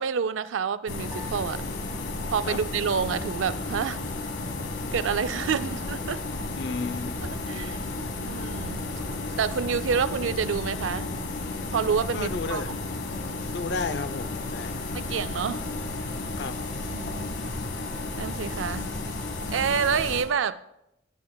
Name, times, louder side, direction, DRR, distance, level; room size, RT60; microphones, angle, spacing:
voice 1, 0.0-1.6 2.3-4.0 4.9-6.2 7.5-7.8 8.2-8.9 9.4-11.2 11.7-12.8 14.9-15.6 16.9-17.3 18.2-18.9 19.5-20.6, right 6 dB, 80° right, 0.4 m, -28 dB
sound 1, 0.9-20.2, left 2 dB, 80° left, 1.2 m, -33 dB
Piano, 1.1-3.6, equal, 15° right, 1.9 m, -50 dB
voice 2, 6.6-7.2 12.1-12.7 13.5-14.8 16.4-16.6, left 4 dB, 60° left, 0.6 m, -32 dB
17.5 x 9.5 x 2.3 m
head